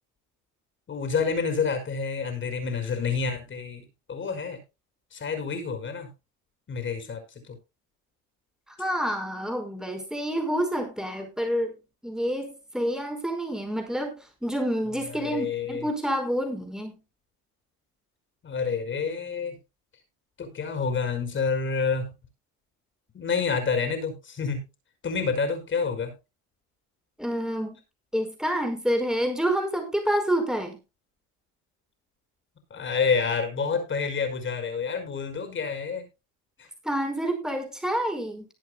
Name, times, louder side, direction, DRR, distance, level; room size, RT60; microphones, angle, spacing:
voice 1, 0.9-4.6 5.1-6.1 6.7-7.2 7.5-7.6 15.1-15.9 18.4-19.6 20.4-22.1 23.1-24.7 25.0-26.1 32.7-36.0 36.6-36.7, left 5 dB, 35° left, 8 dB, 5.4 m, -28 dB
voice 2, 8.7-11.8 12.0-17.0 27.2-27.8 28.1-30.8 36.8-38.4, equal, ahead, 4 dB, 4.9 m, -28 dB
20.0 x 8.1 x 2.3 m, 0.26 s
cardioid pair, 120°, 34 cm